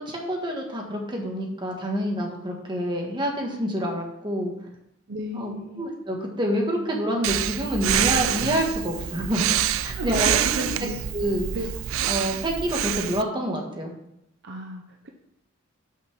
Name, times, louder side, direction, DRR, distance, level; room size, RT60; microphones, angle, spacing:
voice 1, 0.0-4.5 5.3-9.5 9.8-10.4 10.8-11.5 12.1-13.9, equal, 25° right, 0 dB, 1.6 m, -27 dB
voice 2, 5.1-5.8 9.9-11.0 11.5-11.7 14.4-15.1, right 1 dB, 55° right, 3 dB, 0.8 m, -34 dB
Breathing, 7.2-13.2, right 10 dB, 80° right, 0.4 m, -26 dB
6.0 x 5.9 x 6.1 m, 0.82 s
head